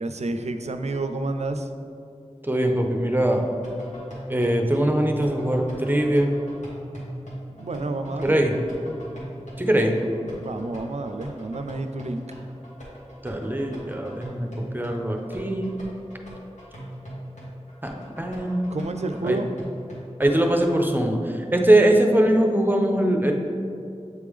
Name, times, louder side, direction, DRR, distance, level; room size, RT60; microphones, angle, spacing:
voice 1, 0.0-1.7 7.5-8.5 10.4-12.3 18.7-19.5, right 2 dB, 70° right, 8 dB, 0.4 m, -29 dB
voice 2, 2.4-3.4 4.3-6.3 8.2-8.5 9.6-10.0 13.2-15.8 17.8-18.9 19.2-19.4 20.2-23.3, right 1 dB, 15° right, 3 dB, 0.6 m, -22 dB
sound 1, 3.3-20.9, equal, 85° left, 1.4 m, -40 dB
8.0 x 3.3 x 3.5 m, 2.5 s
wide cardioid pair, 45°, 12 cm